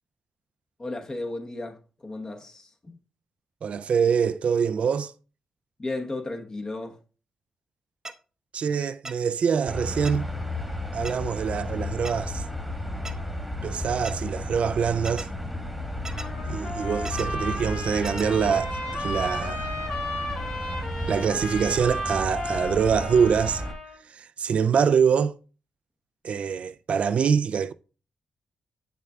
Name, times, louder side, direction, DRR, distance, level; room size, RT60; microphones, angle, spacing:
voice 1, 0.8-3.0 5.8-7.0, left 2 dB, 30° left, 1.1 m, -34 dB
voice 2, 3.6-5.1 8.5-10.3 10.9-12.5 13.6-15.3 16.5-19.8 21.1-23.6 24.0-25.4 26.2-27.7, right 6 dB, 65° right, 0.3 m, -24 dB
sound 1, 8.1-8.2 9.1-9.2 10.1-10.2 11.1-11.2 12.1-12.2 13.1-13.2 14.1-14.2 15.1-15.3 16.1-16.3 17.1-17.3 18.1-18.3, right 2 dB, 25° right, 0.6 m, -36 dB
sound 2, 9.7-23.7, left 1 dB, ahead, 1.4 m, -33 dB
Trumpet, 16.1-24.0, left 1 dB, 85° left, 3.1 m, -34 dB
7.8 x 6.7 x 2.3 m
cardioid pair, 90°, 2 cm